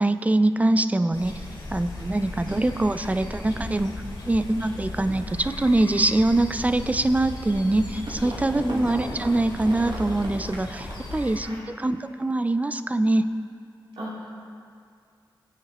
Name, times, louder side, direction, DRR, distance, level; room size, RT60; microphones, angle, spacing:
voice 1, 0.0-1.4 1.7-3.9 4.2-13.3, right 2 dB, 15° right, 11 dB, 0.5 m, -23 dB
sound 1, 1.1-11.4, left 2 dB, 70° left, 3.5 m, -37 dB
sound 2, 7.9-11.2, right 1 dB, 60° right, 1.5 m, -37 dB
voice 2, 8.5-8.9 11.4-11.6 14.0-14.3, equal, 80° right, -8 dB, 3.3 m, -32 dB
21.0 x 8.9 x 3.1 m, 2.3 s
wide cardioid pair, 95°, 9 cm